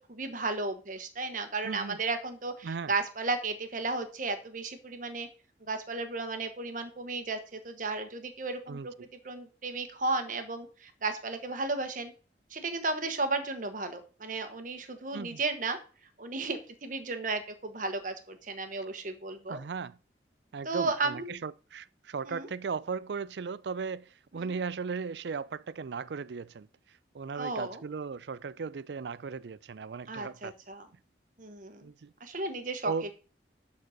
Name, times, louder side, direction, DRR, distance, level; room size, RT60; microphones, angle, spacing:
voice 1, 0.1-5.3 5.7-8.9 9.2-12.1 12.5-15.8 16.2-19.6 20.6-21.4 22.2-22.5 24.4-24.5 27.3-27.8 30.1-30.9 31.4-31.8 32.2-32.9, right 3 dB, 50° right, 1.3 m, -34 dB
voice 2, 1.6-2.0 2.6-2.9 8.7-8.9 15.1-15.4 19.5-20.0 20.5-26.7 27.1-30.5 31.8-32.1 32.8-33.1, right 5 dB, 75° right, 0.4 m, -37 dB
11.0 x 4.2 x 6.5 m
head